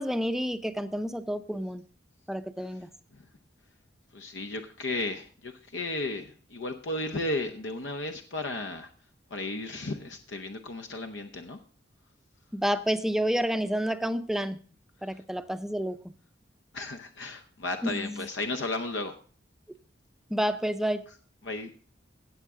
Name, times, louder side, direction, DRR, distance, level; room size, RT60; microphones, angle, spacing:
voice 1, 0.0-1.8 2.3-2.9 12.5-14.6 15.0-16.1 17.8-18.3 20.3-21.1, equal, ahead, 10 dB, 0.5 m, -29 dB
voice 2, 4.1-8.9 9.3-11.6 16.7-19.1 21.4-21.7, left 2 dB, 75° left, 7 dB, 0.8 m, -34 dB
16.0 x 7.3 x 3.6 m, 0.42 s
head